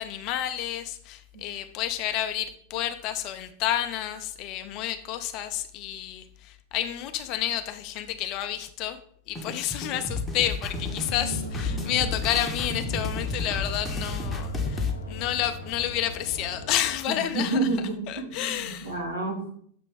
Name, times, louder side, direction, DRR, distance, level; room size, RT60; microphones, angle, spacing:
voice 1, 0.0-9.0 9.3-17.7 18.1-18.9, left 12 dB, 40° left, 9 dB, 0.5 m, -30 dB
sound 1, 9.3-14.9, left 3 dB, 15° left, 0.8 m, -32 dB
sound 2, 10.7-17.0, left 1 dB, 75° left, 0.7 m, -37 dB
voice 2, 17.1-19.6, right 2 dB, 70° right, 2 dB, 1.2 m, -30 dB
6.8 x 3.0 x 4.9 m, 0.62 s
figure-of-eight pair, 90°, 0 cm